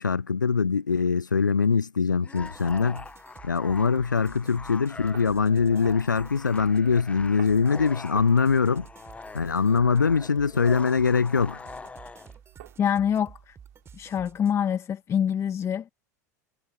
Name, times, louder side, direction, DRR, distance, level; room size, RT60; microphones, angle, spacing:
voice 1, 0.0-3.0 3.4-8.9 9.3-11.6, left 5 dB, 85° left, 0.4 m, -23 dB
sound 1, 2.2-12.4, left 4 dB, 15° left, 1.3 m, -43 dB
sound 2, 2.3-14.5, right 7 dB, 25° right, 5.6 m, -51 dB
sound 3, 3.6-14.4, right 18 dB, 60° right, 7.7 m, -53 dB
voice 2, 12.8-13.6 13.9-15.9, left 8 dB, 30° left, 2.1 m, -26 dB
figure-of-eight pair, 80°, 10 cm